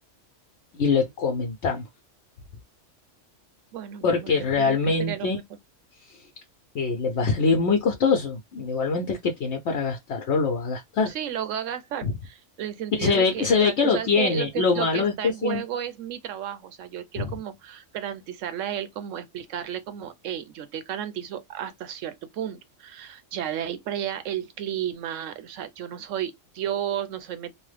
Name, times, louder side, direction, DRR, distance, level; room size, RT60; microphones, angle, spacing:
voice 1, 0.7-1.9 4.0-5.4 6.0-6.2 6.7-11.1 12.0-12.1 12.9-15.6 17.2-17.3, left 4 dB, 65° left, 0.9 m, -24 dB
voice 2, 3.7-5.4 11.1-27.6, right 10 dB, 85° right, 1.0 m, -33 dB
3.0 x 2.1 x 3.2 m
omnidirectional pair, 1.3 m